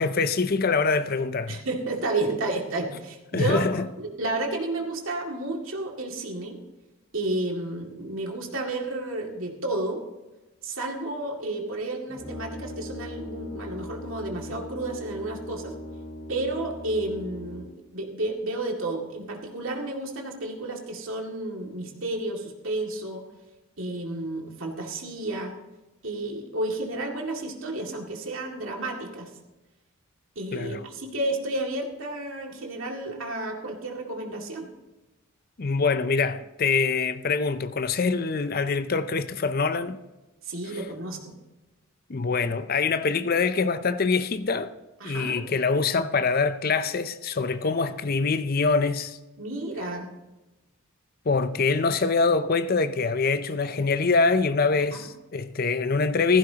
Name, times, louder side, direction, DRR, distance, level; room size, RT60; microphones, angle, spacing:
voice 1, 0.0-1.6 3.3-3.9 30.5-30.8 35.6-40.0 42.1-44.7 45.0-49.2 51.3-56.4, left 4 dB, 40° left, 0.5 m, -24 dB
voice 2, 1.5-6.6 7.1-10.0 10.6-15.7 16.3-23.2 23.8-25.5 26.0-29.3 30.4-34.7 40.4-41.3 45.0-45.4 49.4-50.1 54.9-55.0, right 2 dB, 65° right, 2.3 m, -31 dB
Brass instrument, 12.1-17.8, left 1 dB, ahead, 4.0 m, -39 dB
15.5 x 15.0 x 2.9 m
head